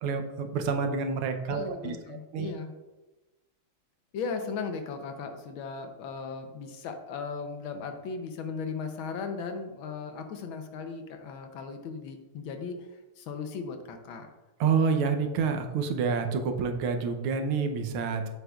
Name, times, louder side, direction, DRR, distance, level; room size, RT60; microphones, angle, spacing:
voice 1, 0.0-2.0 2.3-2.5 14.6-18.3, right 5 dB, 85° right, 6 dB, 1.6 m, -28 dB
voice 2, 1.5-2.7 4.1-14.3, left 5 dB, 75° left, 6 dB, 1.5 m, -37 dB
8.0 x 7.9 x 2.4 m, 1.1 s
omnidirectional pair, 2.3 m